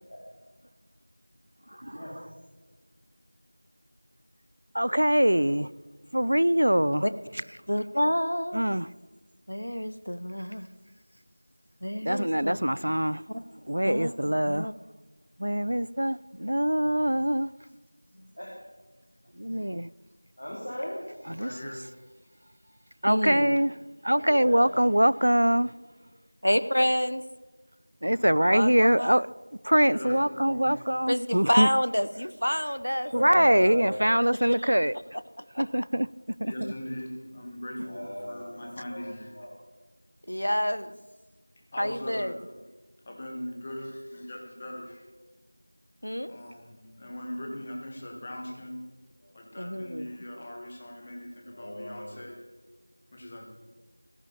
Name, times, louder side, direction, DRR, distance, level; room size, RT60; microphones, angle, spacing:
voice 1, 1.7-2.1 4.7-5.7 6.1-7.1 8.5-8.9 12.0-13.2 13.7-14.7 15.4-17.5 19.4-19.9 21.3-21.7 23.0-23.7 24.0-25.7 28.0-29.3 29.6-31.7 33.1-35.0 35.6-36.1 36.4-36.7, equal, 60° right, 0.3 m, -23 dB
voice 2, 7.7-8.7 9.5-10.7 11.8-12.6 13.3-13.4 13.9-14.1 14.5-14.7 23.1-23.6 26.4-27.2 28.5-29.2 31.1-33.1 34.5-34.6 35.5-35.6 40.3-41.0 41.8-42.3 46.0-46.3 49.6-50.1, equal, 75° left, 0.8 m, -28 dB
voice 3, 18.1-18.5 20.4-21.0 24.1-24.9 33.0-34.2 37.8-39.6 49.2-49.3 51.5-52.1, equal, 45° left, 2.6 m, -38 dB
voice 4, 21.4-21.8 28.1-28.3 29.8-30.8 36.4-39.3 41.7-42.4 43.1-45.1 46.3-48.8 49.3-52.4 53.1-53.5, left 1 dB, 10° left, 0.9 m, -40 dB
14.5 x 11.5 x 5.0 m
figure-of-eight pair, 175°, 0 cm